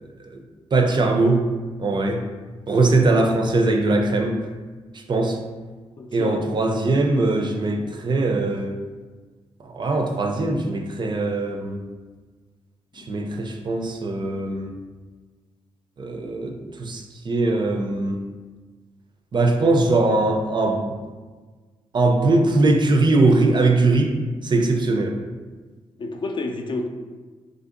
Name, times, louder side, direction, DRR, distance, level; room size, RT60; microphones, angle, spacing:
voice 1, 0.7-1.4 1.8-2.2 2.7-4.4 5.1-5.4 6.1-8.7 9.6-11.8 13.1-14.7 16.0-18.2 19.3-20.9 21.9-24.1 24.4-25.2, right 2 dB, 45° right, 3 dB, 0.4 m, -21 dB
voice 2, 6.0-6.4 13.0-13.1 26.0-26.9, left 2 dB, 45° left, 3 dB, 0.4 m, -29 dB
3.3 x 2.5 x 2.5 m, 1.4 s
cardioid pair, 55°, 11 cm